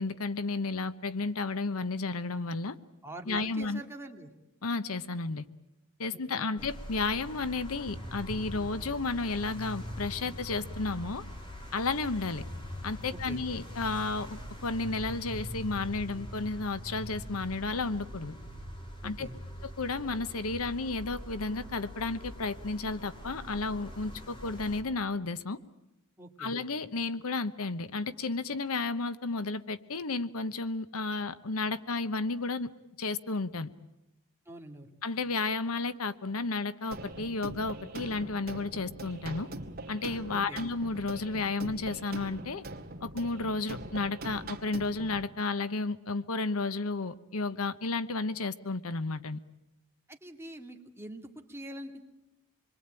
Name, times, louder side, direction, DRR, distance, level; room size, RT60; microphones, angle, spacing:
voice 1, 0.0-2.7 3.3-3.8 4.6-5.5 6.0-11.2 11.7-12.4 12.8-18.3 19.0-19.3 19.6-25.6 26.4-32.7 33.0-33.7 35.0-39.5 39.9-42.6 43.0-49.4, left 3 dB, 80° left, 13 dB, 1.0 m, -32 dB
voice 2, 3.0-4.3 6.1-6.5 13.1-13.4 19.0-19.4 26.2-26.5 34.5-34.9 40.3-40.6 50.1-52.1, right 1 dB, 10° right, 3 dB, 2.2 m, -44 dB
sound 1, 6.6-24.8, equal, 25° left, 3.9 m, -43 dB
sound 2, 36.9-45.3, right 2 dB, 45° right, 2.2 m, -43 dB
27.0 x 22.0 x 9.0 m, 0.92 s
head